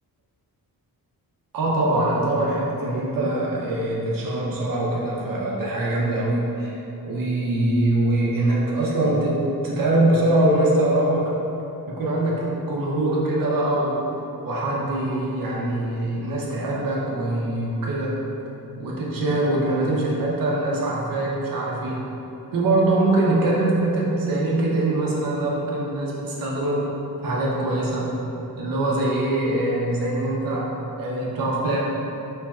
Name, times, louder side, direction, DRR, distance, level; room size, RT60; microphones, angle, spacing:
voice 1, 1.5-11.3 11.9-14.0 14.4-18.1 18.8-22.0 22.5-26.9 27.2-28.2 28.6-31.8, right 1 dB, 60° right, -4 dB, 0.8 m, -23 dB
4.4 x 3.2 x 2.3 m, 3.0 s
wide cardioid pair, 155°, 39 cm